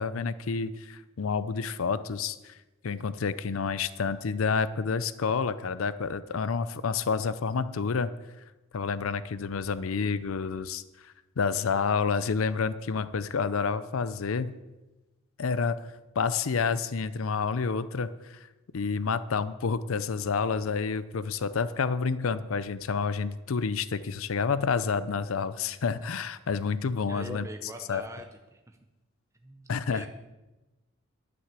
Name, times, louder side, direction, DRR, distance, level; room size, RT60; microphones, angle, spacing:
voice 1, 0.0-2.5 2.8-8.1 8.7-14.6 15.4-15.8 16.2-18.4 18.7-27.5 27.9-28.1 29.7-30.1, left 5 dB, 80° left, 15 dB, 0.5 m, -29 dB
voice 2, 27.1-28.8 29.4-30.1, right 1 dB, 15° right, 4 dB, 0.8 m, -43 dB
11.5 x 6.1 x 7.4 m, 1.1 s
head